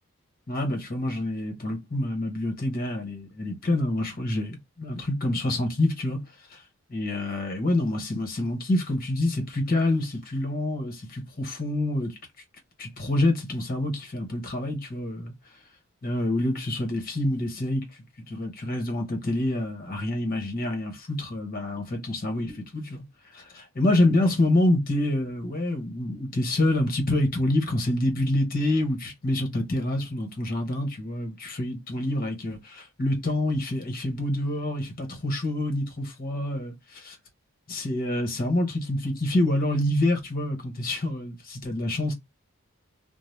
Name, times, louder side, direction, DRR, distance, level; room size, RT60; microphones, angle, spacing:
voice 1, 0.5-6.2 6.5-6.6 6.9-12.1 12.8-15.3 16.0-17.8 18.3-23.0 23.3-37.2 37.7-42.1, left 1 dB, 40° left, 1.0 m, -27 dB
2.7 x 2.0 x 3.1 m
head